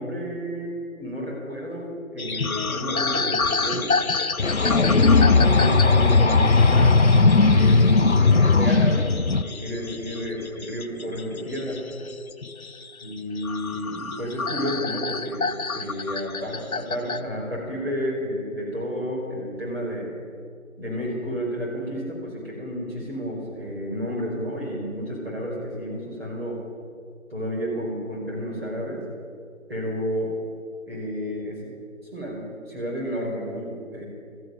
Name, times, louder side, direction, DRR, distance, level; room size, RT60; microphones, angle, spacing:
voice 1, 0.0-3.9 4.6-7.0 7.5-9.1 9.4-11.8 13.0-20.1 20.8-26.6 27.3-29.0 29.7-30.3 30.8-31.7 32.1-34.1, equal, 45° right, -3 dB, 5.0 m, -31 dB
sound 1, 2.2-17.2, left 4 dB, 80° left, 1.0 m, -30 dB
sound 2, 4.4-9.4, left 3 dB, 55° left, 0.6 m, -17 dB
13.5 x 11.5 x 9.0 m, 2.2 s
figure-of-eight pair, 180°, 42 cm